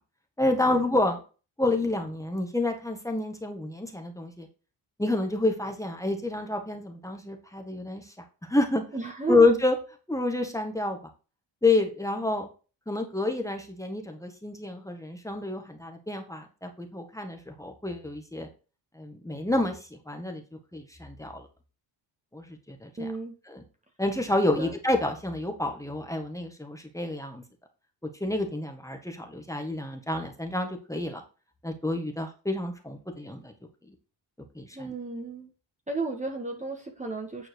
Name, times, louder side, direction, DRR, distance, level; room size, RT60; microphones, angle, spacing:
voice 1, 0.4-1.2 1.6-4.5 5.0-8.0 8.4-8.8 9.3-9.7 10.1-11.0 11.6-12.5 12.9-18.5 19.0-19.8 20.1-20.4 20.7-21.4 22.3-23.1 23.5-23.6 24.0-27.4 28.2-31.2 31.6-33.5 34.6-34.9, left 2 dB, 5° left, 4 dB, 1.8 m, -28 dB
voice 2, 8.9-9.5 23.0-23.3 24.6-24.8 34.7-35.5 35.9-37.5, right 3 dB, 15° right, 1 dB, 1.6 m, -33 dB
9.4 x 4.6 x 4.7 m, 0.34 s
cardioid pair, 110°, 45 cm